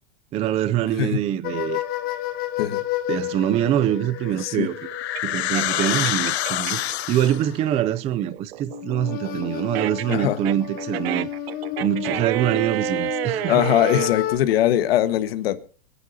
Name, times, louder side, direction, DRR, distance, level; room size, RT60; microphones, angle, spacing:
voice 1, 0.3-1.8 3.1-4.8 5.2-6.8 7.1-11.3 11.8-13.6, right 11 dB, 20° right, 0.5 m, -24 dB
sound 1, 1.4-5.3 8.7-14.4, left 13 dB, 30° left, 1.2 m, -31 dB
sound 2, 3.5-7.0 7.4-14.1, right 14 dB, 70° right, 0.7 m, -30 dB
sound 3, 4.1-7.6, left 13 dB, 85° left, 0.9 m, -26 dB
voice 2, 13.5-15.6, left 12 dB, 70° left, 1.6 m, -21 dB
26.0 x 9.9 x 2.8 m
supercardioid pair, 150°, 31 cm